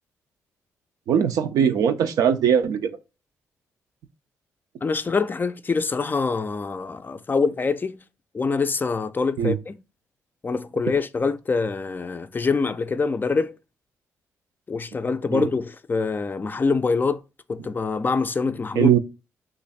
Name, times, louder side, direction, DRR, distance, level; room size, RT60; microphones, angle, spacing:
voice 1, 1.1-2.9 9.4-9.5 15.3-15.5 18.8-19.0, right 8 dB, 75° right, 0.5 m, -20 dB
voice 2, 4.8-8.0 8.3-9.8 10.4-13.5 14.7-17.2 17.5-18.9, left 4 dB, 30° left, 0.4 m, -25 dB
3.1 x 2.5 x 4.1 m
supercardioid pair, 55°, 6 cm